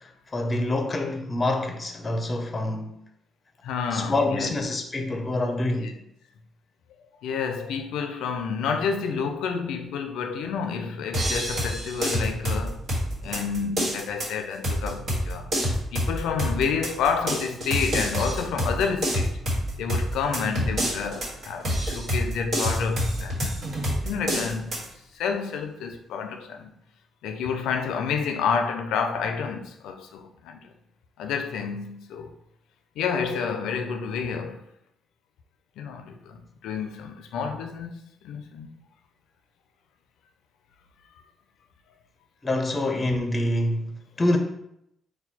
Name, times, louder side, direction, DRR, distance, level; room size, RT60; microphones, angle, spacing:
voice 1, 0.0-3.0 3.9-5.9 42.4-44.4, left 1 dB, 25° left, 0.6 m, -26 dB
voice 2, 3.6-4.6 7.2-12.8 13.2-15.5 15.9-19.4 19.8-23.6 24.0-26.7 27.2-30.7 31.2-32.3 33.0-34.6 35.8-38.7, left 6 dB, 85° left, 0.4 m, -29 dB
sound 1, 11.1-24.9, equal, 55° right, 1.5 m, -28 dB
4.3 x 2.2 x 4.1 m
cardioid pair, 90°, 0 cm